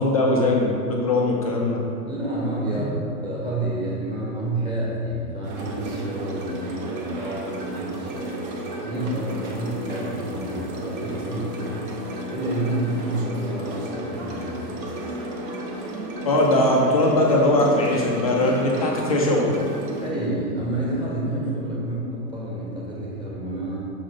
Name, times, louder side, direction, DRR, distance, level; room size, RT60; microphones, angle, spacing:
voice 1, 0.0-1.8 2.7-2.8 16.2-19.5, left 1 dB, 25° left, -2 dB, 0.4 m, -20 dB
voice 2, 2.1-8.5 8.8-11.8 12.3-14.6 20.0-23.9, right 1 dB, 10° right, -6 dB, 1.5 m, -29 dB
sound 1, 5.4-20.1, equal, 35° right, 0.9 m, -33 dB
6.4 x 3.7 x 5.2 m, 2.5 s
figure-of-eight pair, 100°, 49 cm